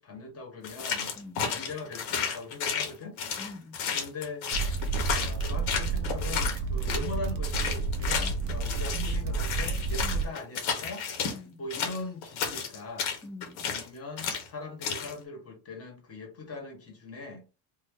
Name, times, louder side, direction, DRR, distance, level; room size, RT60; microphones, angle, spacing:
voice 1, 0.0-1.1 1.4-3.2 3.9-4.5 5.1-13.1 13.6-17.5, left 3 dB, 30° left, 1.3 m, -40 dB
sound 1, 0.6-7.1 7.4-11.4 11.7-13.9 14.2-14.5 14.8-15.1, left 6 dB, 70° left, 1.2 m, -32 dB
voice 2, 1.2-1.5 3.4-3.7 8.2-8.5 10.0-10.3 11.3-11.6 13.2-13.7, left 3 dB, 5° left, 0.6 m, -45 dB
sound 2, 4.5-10.2, right 4 dB, 45° right, 0.7 m, -30 dB
2.6 x 2.6 x 3.6 m
cardioid pair, 130°, 50 cm